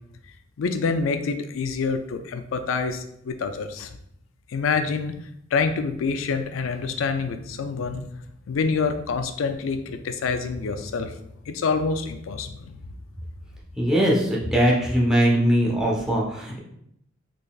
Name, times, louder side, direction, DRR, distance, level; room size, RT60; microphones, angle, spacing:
voice 1, 0.6-3.9 4.5-5.2 5.5-8.0 8.5-11.1 11.5-12.8, left 4 dB, 85° left, 8 dB, 0.4 m, -26 dB
voice 2, 13.8-16.6, equal, 5° right, -5 dB, 0.8 m, -21 dB
3.9 x 3.3 x 2.4 m, 0.75 s
head